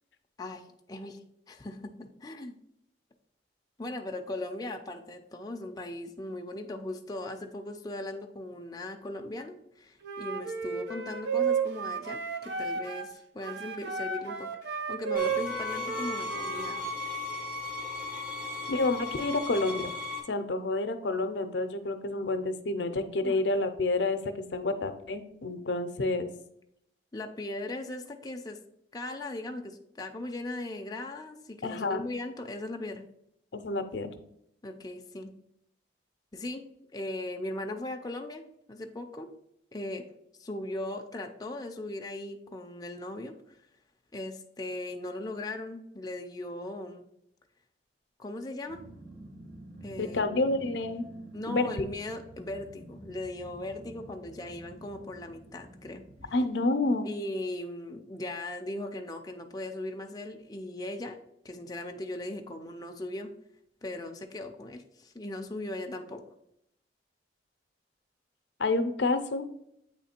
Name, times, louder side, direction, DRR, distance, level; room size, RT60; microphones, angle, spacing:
voice 1, 0.4-2.6 3.8-16.8 23.2-23.5 27.1-28.6 28.9-33.0 34.6-35.3 36.3-36.7 36.9-39.3 39.7-40.1 40.4-43.6 44.1-47.1 48.2-48.8 49.8-50.4 51.3-56.3 57.0-61.2 61.4-63.3 63.8-66.2, left 1 dB, 20° left, 3 dB, 0.5 m, -38 dB
Wind instrument woodwind instrument, 10.0-13.1 13.4-16.8, right 6 dB, 65° right, 0.7 m, -33 dB
sound 1, 15.1-20.2, left 3 dB, 50° right, 1.7 m, -36 dB
voice 2, 18.7-19.9 20.3-26.3 31.6-32.1 33.5-34.1 50.0-51.1 51.5-51.7 56.3-57.1 68.6-69.5, left 2 dB, 75° left, 8 dB, 0.6 m, -29 dB
Growling, 48.7-56.4, right 1 dB, 85° right, 2.4 m, -49 dB
8.2 x 3.2 x 4.3 m, 0.76 s
head